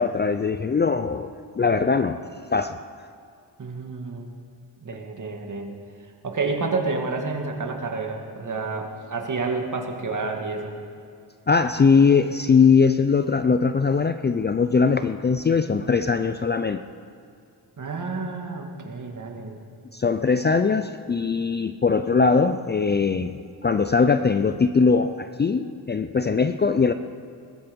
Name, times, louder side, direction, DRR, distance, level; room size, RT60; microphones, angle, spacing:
voice 1, 0.0-2.2 2.5-2.9 11.5-16.8 19.9-23.3 23.6-26.9, left 5 dB, 25° left, 10 dB, 0.4 m, -21 dB
voice 2, 3.6-4.3 4.8-5.7 6.2-10.7 17.8-19.6, right 3 dB, 45° right, 3 dB, 2.1 m, -29 dB
20.5 x 13.5 x 5.3 m, 2.4 s
cardioid pair, 100°, 41 cm